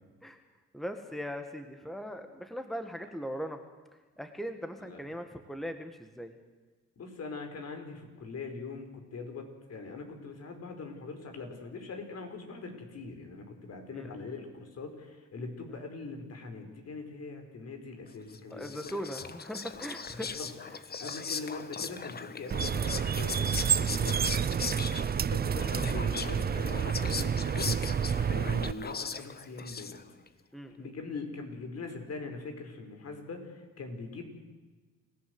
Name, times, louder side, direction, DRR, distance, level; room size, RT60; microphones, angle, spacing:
voice 1, 0.7-3.6 4.2-6.3 13.9-14.2 15.7-15.8 18.5-20.4 24.8-25.0 30.5-30.9, equal, ahead, 7 dB, 1.9 m, -39 dB
voice 2, 7.0-9.4 9.7-18.8 20.2-20.5 21.0-24.3 25.2-27.7 28.3-30.0 30.8-34.2, left 4 dB, 55° left, 5 dB, 5.0 m, -42 dB
Whispering, 18.3-30.3, left 5 dB, 30° left, 1.3 m, -39 dB
sound 1, 22.5-28.7, right 7 dB, 30° right, 0.6 m, -29 dB
28.5 x 16.0 x 8.0 m, 1.3 s
cardioid pair, 90°, 30 cm